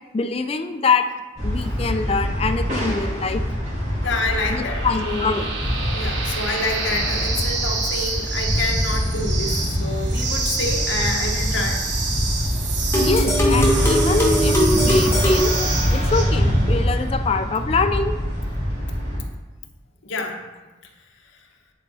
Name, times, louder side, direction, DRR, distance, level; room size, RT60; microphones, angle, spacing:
voice 1, 0.1-1.1 1.4-3.4 4.5-5.5 13.0-15.5 15.9-18.1, left 4 dB, 30° left, 7 dB, 0.4 m, -24 dB
sound 1, 1.4-19.2, equal, 35° right, 2.7 m, -24 dB
voice 2, 4.0-5.4 5.9-11.8 20.0-20.4, left 3 dB, 70° left, 1 dB, 1.0 m, -28 dB
sound 2, 4.0-16.2, right 4 dB, 60° right, 1.3 m, -28 dB
sound 3, 12.9-16.4, equal, 15° left, 1.2 m, -21 dB
10.0 x 4.6 x 4.1 m, 1.2 s
head